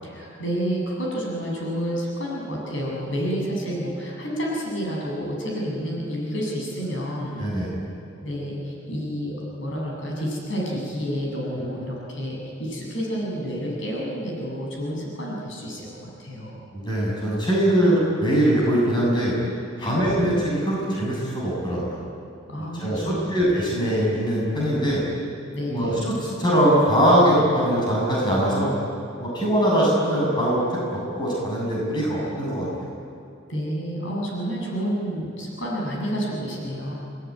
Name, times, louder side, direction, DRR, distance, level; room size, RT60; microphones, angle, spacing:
voice 1, 0.0-7.5 8.2-16.7 19.8-20.3 22.5-23.4 25.5-26.0 33.5-36.9, equal, 70° left, -3 dB, 7.6 m, -29 dB
voice 2, 7.4-7.7 11.6-11.7 16.7-19.4 19.8-22.0 22.8-25.0 25.7-28.7 29.2-30.6 30.9-32.9, equal, 20° left, -5 dB, 7.4 m, -22 dB
28.5 x 20.0 x 9.7 m, 2.6 s
head